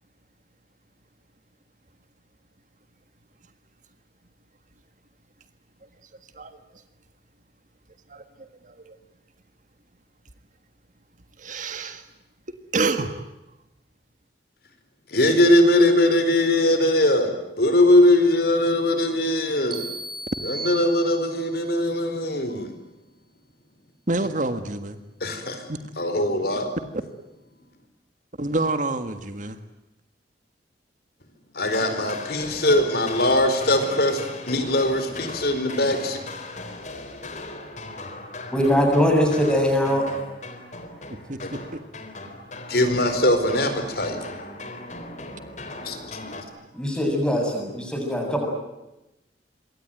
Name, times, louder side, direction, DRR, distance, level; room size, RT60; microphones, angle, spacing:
voice 1, 6.3-6.8 8.1-9.0 11.4-12.1 12.7-13.3 24.1-25.0 25.7-25.8 28.4-29.6 41.1-41.6, right 2 dB, 45° right, 9 dB, 1.7 m, -28 dB
voice 2, 15.1-17.3 17.6-19.8 20.4-22.7 25.2-25.6 26.0-26.7 31.5-36.2 41.4-41.5 42.7-44.2 45.8-46.4, left 1 dB, 55° left, 8 dB, 4.6 m, -21 dB
sound 1, 19.7-21.6, right 2 dB, 25° right, 4.4 m, -35 dB
sound 2, 31.7-46.4, left 2 dB, 40° left, 3.8 m, -38 dB
voice 3, 38.5-40.2 46.7-48.5, equal, 5° left, 2 dB, 7.7 m, -21 dB
27.0 x 23.0 x 9.1 m, 0.96 s
head